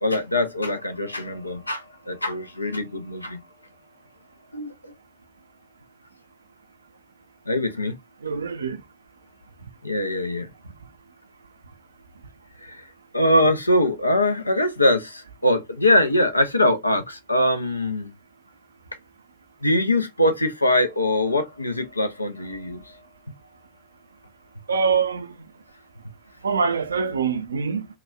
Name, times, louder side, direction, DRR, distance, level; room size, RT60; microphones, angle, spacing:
voice 1, 0.0-3.4 4.5-4.9 7.5-8.0 9.8-10.5 12.6-12.8 13.1-18.1 19.6-23.0, left 1 dB, 85° left, 0.5 m, -22 dB
voice 2, 8.2-8.8 24.7-25.4 26.4-27.9, right 5 dB, 70° right, 0.4 m, -24 dB
2.8 x 2.3 x 2.2 m
figure-of-eight pair, 90°, 0 cm